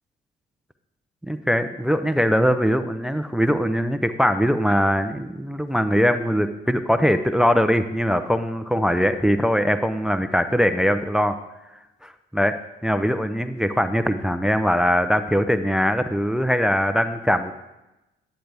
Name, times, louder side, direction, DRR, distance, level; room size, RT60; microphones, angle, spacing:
voice 1, 1.2-11.4 12.0-12.6 12.8-17.5, equal, 5° right, 10 dB, 0.5 m, -21 dB
10.5 x 9.0 x 3.4 m, 0.99 s
cardioid pair, 90°, 20 cm